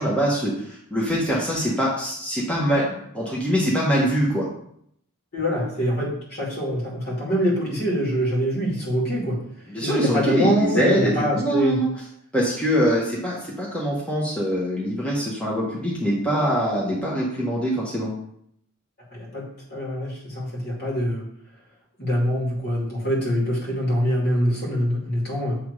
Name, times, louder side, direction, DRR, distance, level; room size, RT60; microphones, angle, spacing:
voice 1, 0.0-4.5 9.7-11.9 12.3-18.1, equal, 5° left, -5 dB, 1.1 m, -23 dB
voice 2, 5.3-9.4 9.8-11.8 19.1-19.4 19.7-21.2 22.0-25.6, equal, 50° left, -4 dB, 2.6 m, -24 dB
7.4 x 3.5 x 4.7 m, 0.69 s
head